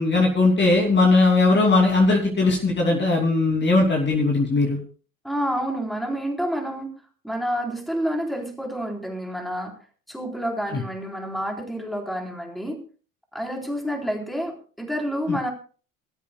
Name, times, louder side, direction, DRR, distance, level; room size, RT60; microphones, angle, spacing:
voice 1, 0.0-4.8 10.7-10.8 15.3-15.4, left 3 dB, 25° left, 0 dB, 2.9 m, -19 dB
voice 2, 5.2-6.9 7.2-9.7 10.1-12.8 13.3-15.5, equal, ahead, 2 dB, 3.8 m, -28 dB
23.0 x 13.0 x 2.3 m, 0.39 s
figure-of-eight pair, 65°, 41 cm